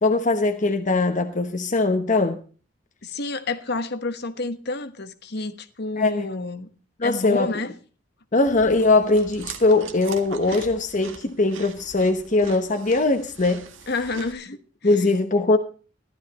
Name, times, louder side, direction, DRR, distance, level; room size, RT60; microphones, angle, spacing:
voice 1, 0.0-2.4 6.0-6.3 7.0-7.5 8.3-13.6 14.8-15.6, left 2 dB, 40° left, 1.0 m, -21 dB
voice 2, 3.0-6.7 7.0-7.7 10.5-10.6 13.9-14.9, left 3 dB, 55° left, 1.3 m, -29 dB
Chewing mastication, 8.5-14.3, right 5 dB, 90° right, 1.8 m, -41 dB
15.0 x 12.5 x 4.1 m
head